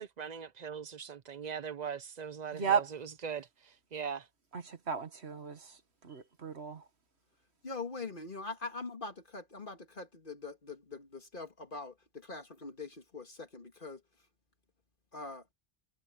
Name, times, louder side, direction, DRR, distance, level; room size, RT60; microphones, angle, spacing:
voice 1, 0.0-4.3, right 7 dB, 45° right, 0.8 m, -41 dB
voice 2, 2.5-2.9 4.5-5.8 6.0-6.8, right 6 dB, 75° right, 1.8 m, -34 dB
voice 3, 7.6-14.0 15.1-15.4, left 3 dB, 50° left, 2.2 m, -43 dB
omnidirectional pair, 1.1 m